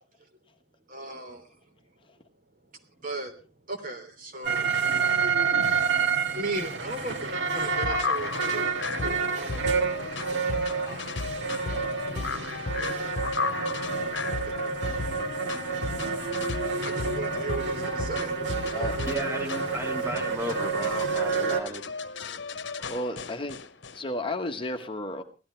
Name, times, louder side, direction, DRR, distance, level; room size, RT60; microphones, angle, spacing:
voice 1, 0.9-1.5 3.0-3.3 3.7-4.9 6.3-8.6 9.0-11.1 12.8-13.1 14.2-14.8 16.7-18.3, right 2 dB, 45° right, 5 dB, 3.1 m, -37 dB
sound 1, 4.4-21.6, right 5 dB, 70° right, 2.1 m, -29 dB
sound 2, 7.6-24.0, left 4 dB, 70° left, 1.0 m, -35 dB
voice 2, 19.0-21.8, right 1 dB, 15° right, 3 dB, 2.3 m, -34 dB
voice 3, 22.6-23.7 23.9-25.2, left 1 dB, 30° left, 6 dB, 1.2 m, -33 dB
17.0 x 13.0 x 4.4 m, 0.34 s
head